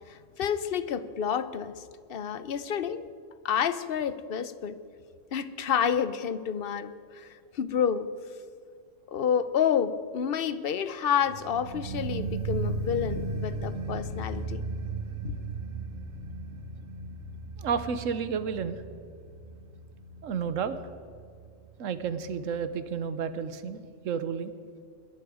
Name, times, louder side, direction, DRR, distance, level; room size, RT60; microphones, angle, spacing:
voice 1, 0.1-1.8 2.1-3.1 3.4-4.8 5.3-7.3 7.5-8.1 9.1-14.6 15.2-15.3, left 8 dB, 55° left, 13 dB, 0.8 m, -29 dB
sound 1, 11.2-22.2 22.5-22.6, right 3 dB, 65° right, 1.4 m, -36 dB
voice 2, 17.6-18.8 20.2-20.8 21.8-24.5, right 6 dB, 85° right, 12 dB, 1.2 m, -31 dB
21.5 x 11.0 x 5.0 m, 2.3 s
omnidirectional pair, 1.3 m